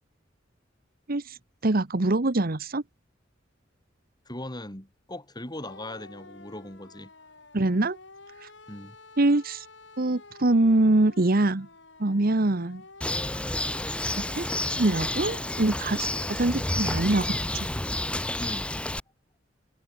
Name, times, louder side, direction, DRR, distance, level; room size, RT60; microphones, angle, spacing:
voice 1, 1.6-2.8 7.5-8.0 9.2-9.7 10.0-11.7 12.0-12.8 14.2-14.5 14.8-17.7, right 2 dB, 50° right, 1.1 m, -24 dB
voice 2, 4.3-7.1 8.7-9.0 18.4-18.7, left 1 dB, 20° left, 6.3 m, -39 dB
sound 1, 5.6-17.1, left 3 dB, 70° left, 7.7 m, -50 dB
Bird, 13.0-19.0, left 1 dB, 5° left, 0.5 m, -30 dB
head